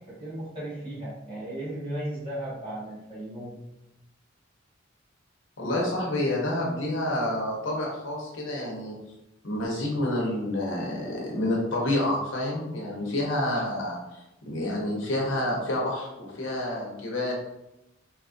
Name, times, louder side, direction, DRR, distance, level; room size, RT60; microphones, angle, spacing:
voice 1, 0.1-3.6, right 1 dB, 25° right, -9 dB, 1.1 m, -35 dB
voice 2, 5.6-8.9 9.4-17.3, left 1 dB, 80° left, -2 dB, 0.8 m, -28 dB
3.0 x 2.4 x 2.5 m, 0.89 s
head